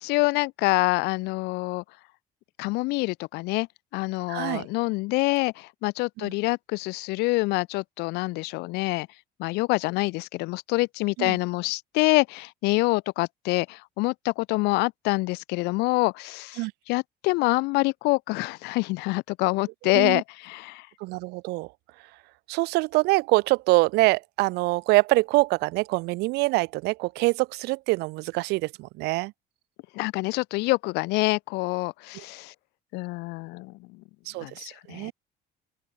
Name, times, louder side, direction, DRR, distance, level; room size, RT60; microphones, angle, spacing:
voice 1, 0.0-1.8 2.6-3.7 3.9-9.1 9.4-20.9 29.9-32.5 32.9-33.8 34.4-35.1, left 23 dB, 75° left, 0.5 m, -26 dB
voice 2, 4.3-4.7 6.2-6.3 11.2-11.4 16.6-16.7 19.9-20.2 21.0-21.7 22.5-29.3 34.3-35.1, right 23 dB, 75° right, 0.6 m, -25 dB
open air
cardioid pair, 170°, 17 cm